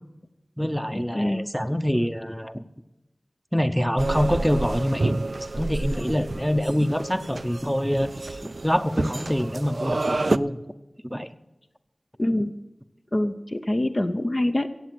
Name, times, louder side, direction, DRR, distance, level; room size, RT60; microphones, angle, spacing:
voice 1, 0.6-2.6 3.5-10.6 11.0-11.4, equal, ahead, 11 dB, 0.8 m, -25 dB
sound 1, 4.0-10.4, right 2 dB, 65° right, 0.4 m, -29 dB
voice 2, 12.2-12.5 13.1-14.7, left 1 dB, 40° left, 6 dB, 0.8 m, -24 dB
15.0 x 8.2 x 7.7 m, 0.99 s
wide cardioid pair, 50°, 0 cm